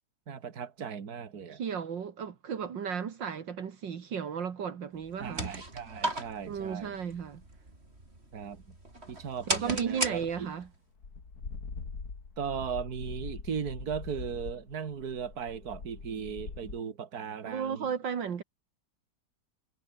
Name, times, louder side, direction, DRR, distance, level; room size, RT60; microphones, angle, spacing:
voice 1, 0.3-1.6 5.2-7.0 8.3-8.6 9.1-10.5 12.4-17.9, right 7 dB, 55° right, 2.4 m, -37 dB
voice 2, 1.5-5.5 6.5-7.4 9.5-10.7 17.5-18.4, right 7 dB, 75° right, 2.4 m, -34 dB
sound 1, 5.0-10.7, right 2 dB, 30° right, 5.8 m, -37 dB
sound 2, 9.6-9.9 10.7-10.8 11.0-16.8, left 4 dB, 55° left, 3.4 m, -43 dB
omnidirectional pair, 2.0 m